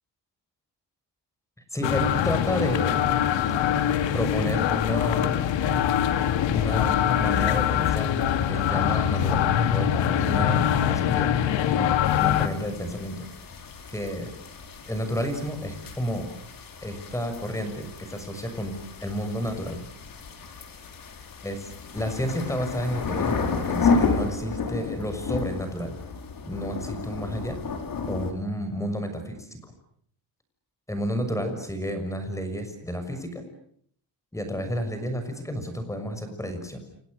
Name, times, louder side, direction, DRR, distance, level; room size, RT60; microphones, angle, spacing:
voice 1, 1.7-3.0 4.1-5.4 6.5-8.1 8.5-11.3 11.7-11.9 12.2-13.3 13.9-14.3 14.9-16.3 16.8-18.7 19.0-19.8 21.4-26.0 26.5-27.6 28.1-29.7 30.9-33.4 34.3-36.8, equal, 5° left, 8 dB, 6.5 m, -31 dB
sound 1, 1.8-12.5, left 9 dB, 80° left, 2.4 m, -23 dB
sound 2, 12.0-28.3, left 4 dB, 50° left, 5.0 m, -32 dB
30.0 x 29.0 x 6.7 m, 0.65 s
cardioid pair, 140°, 44 cm